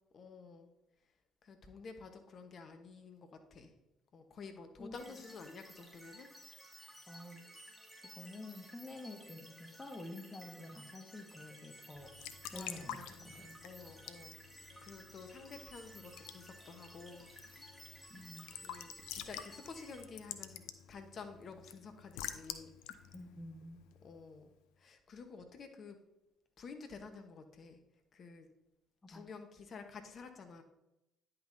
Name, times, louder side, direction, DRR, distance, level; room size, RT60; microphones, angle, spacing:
voice 1, 0.1-0.7 1.4-3.7 4.1-6.3 12.5-13.3 13.6-17.7 18.5-20.6 20.9-22.7 24.0-24.5 24.8-26.0 26.6-27.8 28.1-28.5 29.1-30.6, left 4 dB, 50° left, 7 dB, 1.0 m, -51 dB
voice 2, 4.8-5.2 7.1-7.4 8.2-12.1 12.5-13.6 18.1-18.5 23.1-23.8 29.1-29.2, left 1 dB, 25° left, 4 dB, 1.4 m, -49 dB
sound 1, 4.9-20.0, equal, 5° left, 2.2 m, -56 dB
Raindrop / Drip / Trickle dribble, 11.9-24.4, left 11 dB, 70° left, 0.4 m, -49 dB
10.0 x 5.5 x 2.7 m, 0.89 s
hypercardioid pair, 50°, 0 cm